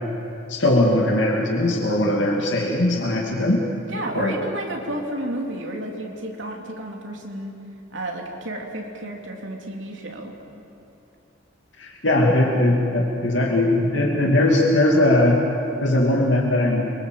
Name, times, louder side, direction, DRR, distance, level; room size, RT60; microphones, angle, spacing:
voice 1, 0.5-3.6 4.1-4.4 11.8-15.4 15.8-16.9, left 1 dB, 60° left, -1 dB, 2.6 m, -20 dB
voice 2, 3.9-7.5 7.9-10.3, right 1 dB, 65° right, 1 dB, 3.5 m, -31 dB
29.0 x 23.5 x 7.9 m, 2.9 s
head